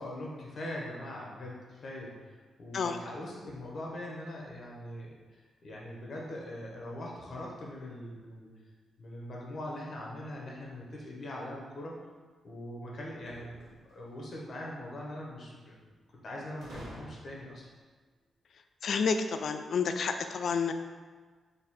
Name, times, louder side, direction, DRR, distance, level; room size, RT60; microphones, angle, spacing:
voice 1, 0.0-2.2 2.6-5.1 5.6-8.5 9.0-12.0 12.4-15.9 16.2-17.6, left 1 dB, 50° left, -3 dB, 1.1 m, -41 dB
sound 1, 13.1-14.1 16.6-17.7, equal, 90° right, 1.5 m, -49 dB
voice 2, 18.8-20.7, left 5 dB, 65° left, 7 dB, 0.3 m, -30 dB
4.0 x 2.8 x 4.2 m, 1.4 s
cardioid pair, 85°, 0 cm